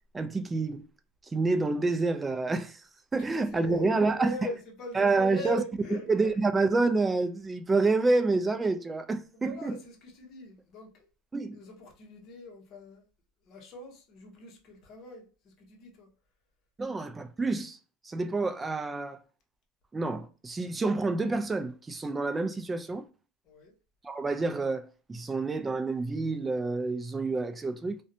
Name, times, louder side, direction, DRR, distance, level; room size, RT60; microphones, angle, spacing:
voice 1, 0.1-0.9 1.3-2.8 3.1-4.4 5.0-5.6 6.1-9.8 11.3-11.6 16.8-17.8 18.0-19.2 19.9-23.1 24.0-28.0, right 3 dB, 15° right, 0.3 m, -28 dB
voice 2, 3.2-6.3 9.3-11.1 11.5-13.0 13.4-16.1 23.4-23.7, left 1 dB, 40° left, 0.8 m, -41 dB
2.5 x 2.1 x 2.6 m
supercardioid pair, 140°, 0 cm